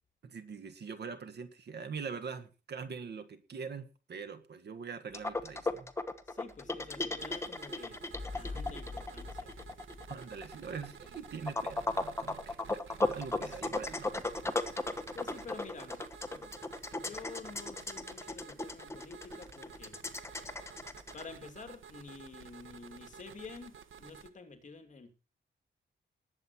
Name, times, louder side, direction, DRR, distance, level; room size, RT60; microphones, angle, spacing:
voice 1, 0.2-5.9 10.1-14.2, right 5 dB, 60° right, 11 dB, 1.7 m, -43 dB
sound 1, 5.1-21.2, left 2 dB, 15° left, 1.2 m, -36 dB
voice 2, 6.3-8.0 8.3-9.5 13.3-13.8 15.1-16.0 16.3-16.5 16.9-20.0 21.1-25.1, left 4 dB, 40° left, 6 dB, 2.7 m, -49 dB
sound 2, 7.2-24.3, right 7 dB, 85° right, 1.3 m, -52 dB
20.0 x 8.2 x 4.5 m, 0.33 s
wide cardioid pair, 155°, 20 cm